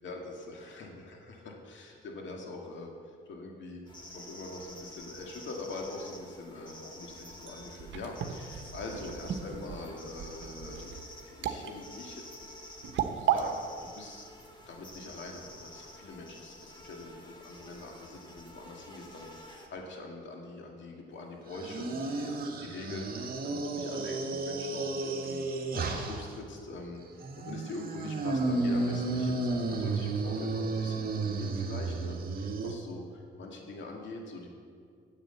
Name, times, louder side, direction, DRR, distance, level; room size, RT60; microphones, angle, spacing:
voice 1, 0.0-2.9 3.3-3.8 4.1-12.5 13.1-14.3 14.7-25.4 25.7-27.0 27.3-34.5, left 2 dB, 70° left, 1 dB, 2.2 m, -43 dB
sound 1, 3.9-19.7, left 1 dB, 25° left, 2.0 m, -50 dB
sound 2, 7.1-13.4, right 9 dB, 75° right, 1.1 m, -35 dB
sound 3, 21.5-26.3 27.2-32.7, right 3 dB, 50° right, 1.6 m, -32 dB
10.0 x 8.1 x 8.0 m, 2.1 s
cardioid pair, 90°, 20 cm